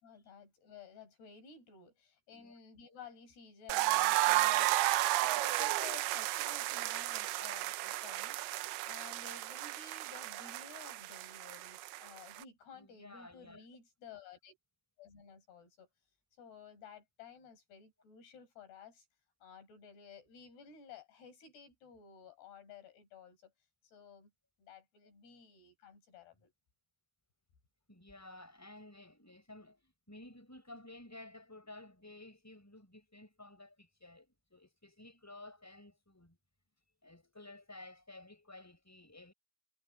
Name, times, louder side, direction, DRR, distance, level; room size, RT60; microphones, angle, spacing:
voice 1, 0.0-4.8 5.2-14.6 15.0-15.9 16.4-19.1 19.4-23.5 23.8-24.3 24.6-26.5, left 7 dB, 85° left, 7.8 m, -54 dB
sound 1, 3.7-12.4, right 17 dB, 85° right, 2.7 m, -33 dB
voice 2, 12.7-13.7 26.4-26.5 27.9-36.4 37.0-39.3, left 2 dB, 5° left, 6.5 m, -54 dB
omnidirectional pair, 4.5 m